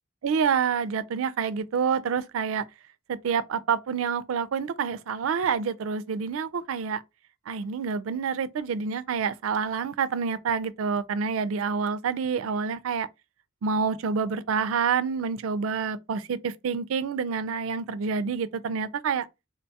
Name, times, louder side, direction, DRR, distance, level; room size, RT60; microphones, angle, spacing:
voice 1, 0.2-2.6 3.1-7.0 7.5-13.1 13.6-19.3, right 6 dB, 90° right, 0.4 m, -27 dB
3.7 x 2.3 x 2.7 m
head